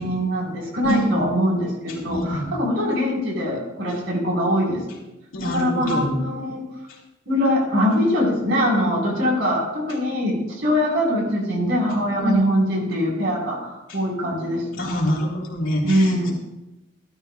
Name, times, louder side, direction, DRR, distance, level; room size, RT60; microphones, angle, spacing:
voice 1, 0.0-4.8 5.4-6.6 7.3-14.8 15.8-16.3, equal, 65° right, -3 dB, 4.1 m, -22 dB
voice 2, 0.8-1.2 2.1-2.5 5.3-6.1 12.1-12.4 14.8-16.3, equal, 75° left, -3 dB, 3.2 m, -25 dB
15.0 x 12.5 x 2.3 m, 0.99 s
head